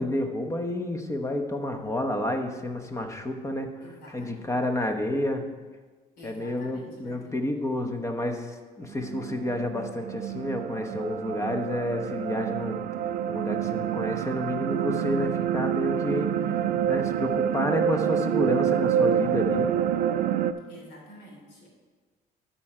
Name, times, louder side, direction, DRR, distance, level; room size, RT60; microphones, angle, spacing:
voice 1, 0.0-3.7 4.1-5.4 6.2-12.8 13.3-16.3 16.9-19.7, left 1 dB, 15° left, 5 dB, 0.9 m, -30 dB
voice 2, 3.8-4.5 6.2-7.4 20.7-21.7, left 1 dB, 75° left, -2 dB, 2.9 m, -48 dB
sound 1, 8.8-20.5, right 9 dB, 60° right, 0.5 m, -27 dB
12.5 x 4.4 x 4.8 m, 1.4 s
cardioid pair, 110°, 17 cm